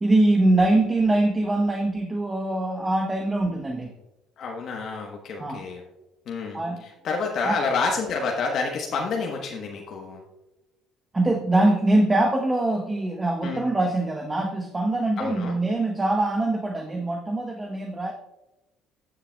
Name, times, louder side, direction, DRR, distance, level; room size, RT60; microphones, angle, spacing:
voice 1, 0.0-3.9 5.4-5.7 6.5-6.8 7.4-7.6 11.1-18.1, right 2 dB, 20° right, 4 dB, 0.9 m, -23 dB
voice 2, 4.4-5.8 6.3-10.2 13.4-13.6 15.2-15.6, left 4 dB, 60° left, 1 dB, 1.1 m, -29 dB
13.5 x 7.3 x 2.3 m, 0.99 s
supercardioid pair, 70°, 0 cm